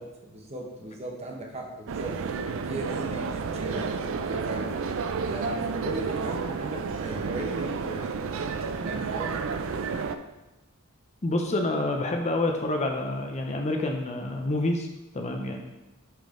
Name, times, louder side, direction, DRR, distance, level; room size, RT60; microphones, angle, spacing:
voice 1, 0.0-2.1 2.7-4.7 5.3-9.4, right 1 dB, 30° right, 0 dB, 0.9 m, -37 dB
sound 1, 1.9-10.2, right 5 dB, 60° right, 0.4 m, -31 dB
voice 2, 11.2-14.9 15.1-15.6, left 2 dB, 30° left, 3 dB, 0.6 m, -27 dB
5.7 x 5.2 x 3.7 m, 1.0 s
head